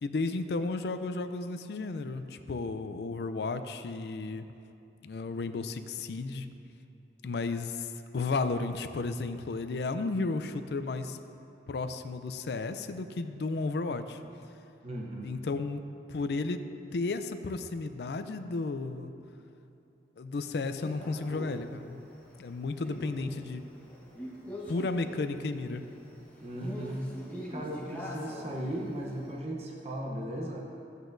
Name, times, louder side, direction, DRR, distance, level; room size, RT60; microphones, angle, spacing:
voice 1, 0.0-4.5 5.0-6.5 7.2-7.9 8.1-11.2 11.7-14.2 15.2-15.8 16.1-16.7 16.9-19.1 20.2-22.0 22.4-23.6 24.7-25.8, left 3 dB, 70° left, 9 dB, 0.4 m, -33 dB
voice 2, 14.8-15.3 26.4-27.1 27.5-30.6, right 1 dB, 35° right, -1 dB, 0.8 m, -37 dB
Male speech man speaking, 20.8-29.3, equal, 10° left, 1.1 m, -44 dB
12.5 x 8.0 x 2.6 m, 2.8 s
head